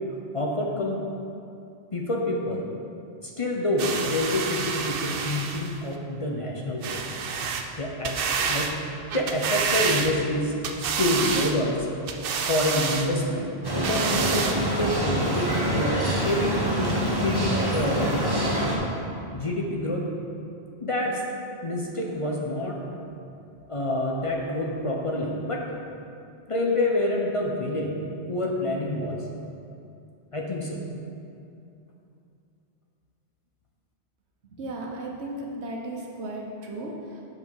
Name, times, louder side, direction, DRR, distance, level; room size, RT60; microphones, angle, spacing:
voice 1, 0.3-1.0 1.9-2.7 3.2-7.0 7.8-8.2 8.5-8.8 9.1-11.9 12.5-18.6 19.3-20.1 20.8-21.2 21.6-22.8 23.7-25.6 26.5-28.0 28.3-29.2 30.3-30.8, left 1 dB, 35° left, -1 dB, 0.7 m, -27 dB
sound 1, 3.8-5.8 6.8-7.7 8.0-8.7 9.1-10.3 10.6-11.6 12.1-13.1 13.7-14.6 15.3-15.4, right 5 dB, 65° right, 0.7 m, -28 dB
sound 2, 13.6-18.8, equal, 25° right, 1.0 m, -26 dB
voice 2, 34.6-37.2, right 1 dB, 85° right, -1 dB, 1.3 m, -35 dB
7.6 x 5.4 x 4.7 m, 2.6 s
omnidirectional pair, 1.1 m